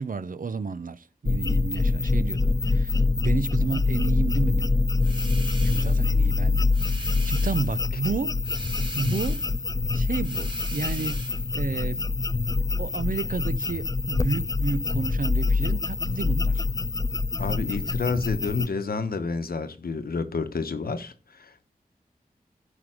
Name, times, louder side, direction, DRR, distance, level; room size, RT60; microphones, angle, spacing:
voice 1, 0.0-4.7 5.6-9.5 9.9-11.2 11.5-12.2 12.8-16.7, right 4 dB, 65° right, 0.7 m, -32 dB
sound 1, 1.3-18.7, left 3 dB, 20° left, 0.3 m, -25 dB
sound 2, 5.0-6.1 6.7-7.8 8.4-9.6 10.2-11.5, right 2 dB, 30° right, 3.3 m, -40 dB
voice 2, 17.4-21.6, left 4 dB, 75° left, 1.0 m, -30 dB
11.0 x 5.2 x 5.0 m
cardioid pair, 45°, 16 cm